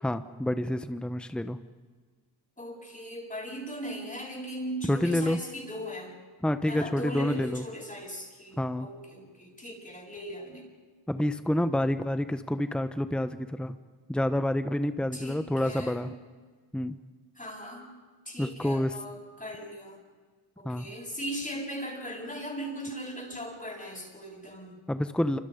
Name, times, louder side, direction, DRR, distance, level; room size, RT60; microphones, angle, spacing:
voice 1, 0.0-1.6 4.9-5.4 6.4-7.6 8.6-8.9 11.1-13.8 14.1-16.1 16.7-17.0 18.4-18.9 20.6-20.9 24.9-25.4, left 1 dB, ahead, 10 dB, 1.0 m, -28 dB
voice 2, 2.6-6.2 6.7-10.7 15.1-16.1 17.4-18.0 18.3-20.0 20.6-24.8, equal, 20° left, -3 dB, 7.4 m, -39 dB
28.0 x 26.0 x 5.3 m, 1.5 s
cardioid pair, 75°, 43 cm